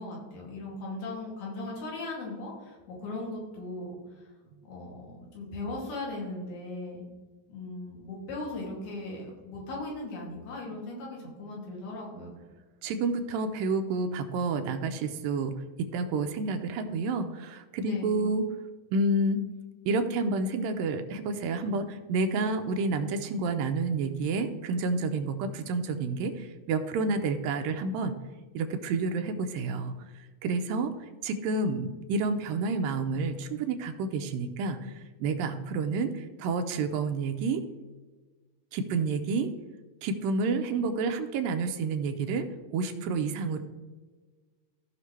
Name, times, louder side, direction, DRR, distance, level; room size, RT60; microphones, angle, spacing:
voice 1, 0.0-4.3 4.6-7.1 7.5-12.4 17.8-18.3, left 2 dB, 85° left, -3 dB, 4.4 m, -38 dB
voice 2, 12.8-15.5 15.8-18.5 18.9-19.4 19.9-28.2 28.5-29.9 30.4-30.9 31.2-37.6 38.7-39.5 40.0-43.6, right 3 dB, 80° right, 7 dB, 2.2 m, -29 dB
15.5 x 5.8 x 3.2 m, 1.3 s
omnidirectional pair, 4.4 m